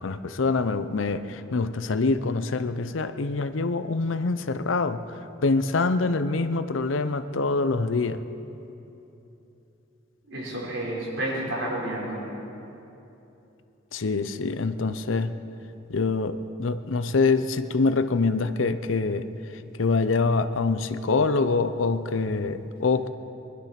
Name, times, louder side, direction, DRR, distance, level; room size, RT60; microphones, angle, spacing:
voice 1, 0.0-5.0 5.4-8.2 13.9-15.4 15.9-19.3 19.8-23.1, left 3 dB, 80° left, 11 dB, 0.7 m, -25 dB
voice 2, 10.3-12.2, right 1 dB, 75° right, -4 dB, 4.3 m, -30 dB
21.0 x 11.5 x 5.9 m, 3.0 s
head